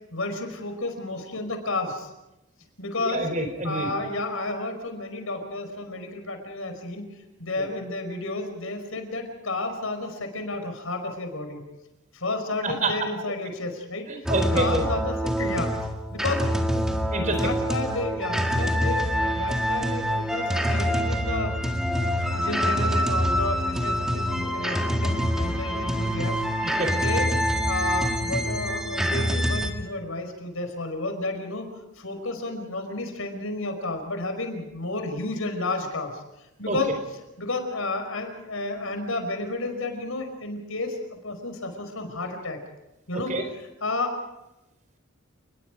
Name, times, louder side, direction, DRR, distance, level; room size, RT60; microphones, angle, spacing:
voice 1, 0.1-2.1 2.8-3.2 3.6-7.1 7.4-11.6 12.1-14.1 14.5-15.8 16.1-16.5 17.4-21.5 22.3-26.4 27.0-27.3 27.7-31.7 32.0-36.2 36.6-36.9 37.4-41.0 41.2-42.6 43.1-43.3 43.8-44.2, left 2 dB, 85° left, 6 dB, 5.1 m, -31 dB
voice 2, 3.0-3.9 7.6-7.7 12.6-12.9 13.2-13.3 14.1-14.8 17.1-17.5 26.6-26.9 36.7-36.9 43.1-43.4, right 2 dB, 35° right, 6 dB, 4.4 m, -28 dB
sound 1, 14.3-29.7, equal, 5° right, 1.9 m, -25 dB
29.5 x 21.0 x 5.1 m, 0.93 s
head